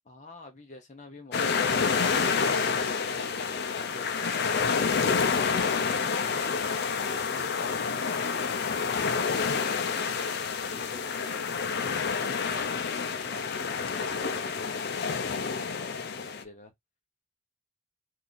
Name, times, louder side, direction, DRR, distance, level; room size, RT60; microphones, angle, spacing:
voice 1, 0.1-5.6 7.0-12.9 13.2-16.7, left 3 dB, 35° left, 0.8 m, -48 dB
sound 1, 1.3-16.4, left 5 dB, 50° left, 0.5 m, -28 dB
2.7 x 2.5 x 4.0 m
head